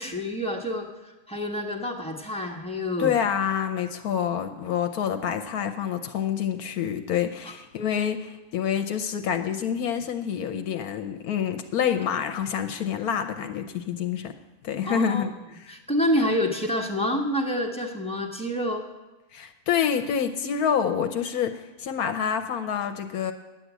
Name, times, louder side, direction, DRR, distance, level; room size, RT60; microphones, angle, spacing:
voice 1, 0.0-3.1 7.4-7.5 12.8-12.9 14.8-15.2 15.7-18.8, equal, 5° left, 1 dB, 1.1 m, -28 dB
voice 2, 3.0-14.3 14.6-15.7 19.3-23.3, left 8 dB, 75° left, 8 dB, 1.2 m, -27 dB
10.5 x 8.5 x 8.2 m, 1.1 s
omnidirectional pair, 1.6 m